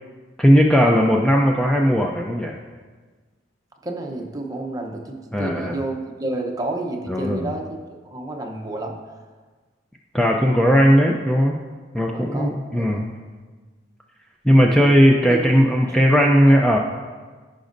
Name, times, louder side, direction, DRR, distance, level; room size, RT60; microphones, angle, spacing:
voice 1, 0.4-2.5 5.3-5.8 7.1-7.5 10.1-11.6 11.9-13.1 14.4-16.8, equal, 5° left, -1 dB, 0.4 m, -17 dB
voice 2, 3.8-7.7 8.1-9.0 12.1-12.5 12.8-13.0 14.8-15.5 15.9-16.0, right 2 dB, 20° right, 1 dB, 0.8 m, -30 dB
15.0 x 5.2 x 2.6 m, 1.4 s
head